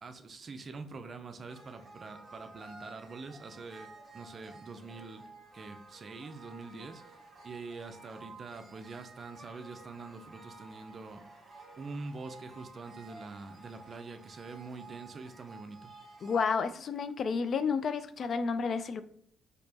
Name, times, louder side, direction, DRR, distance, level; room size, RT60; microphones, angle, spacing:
voice 1, 0.0-5.3 5.5-7.2 7.4-11.2 11.8-15.9, right 3 dB, 45° right, 8 dB, 0.5 m, -45 dB
sound 1, 1.5-16.5, right 3 dB, 25° right, 1.2 m, -52 dB
voice 2, 16.2-19.0, left 5 dB, 55° left, 12 dB, 0.4 m, -31 dB
4.3 x 2.8 x 2.8 m, 0.66 s
cardioid pair, 90°, 0 cm